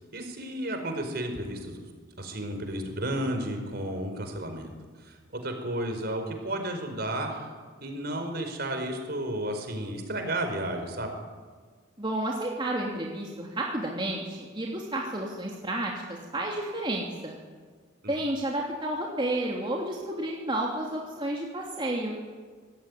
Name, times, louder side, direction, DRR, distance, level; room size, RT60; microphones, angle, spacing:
voice 1, 0.1-1.8 2.2-4.7 5.1-5.2 5.4-7.5 7.8-11.1 18.0-18.1, right 1 dB, 50° right, 5 dB, 4.9 m, -32 dB
voice 2, 12.0-17.4 18.1-22.2, right 1 dB, 25° right, -2 dB, 2.9 m, -31 dB
25.0 x 19.0 x 9.9 m, 1.6 s
head